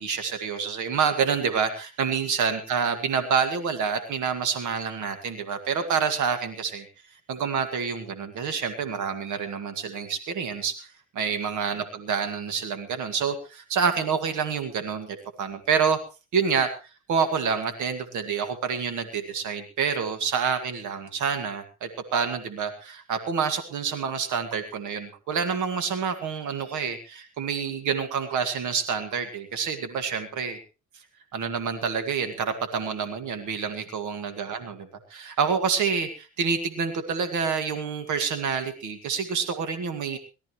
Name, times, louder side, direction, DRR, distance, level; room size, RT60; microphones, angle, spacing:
voice 1, 0.0-6.9 7.3-10.9 11.1-16.0 16.3-16.7 17.1-30.6 31.3-40.2, right 6 dB, 80° right, 7 dB, 2.0 m, -28 dB
21.5 x 13.5 x 3.1 m, 0.31 s
cardioid pair, 90°, 30 cm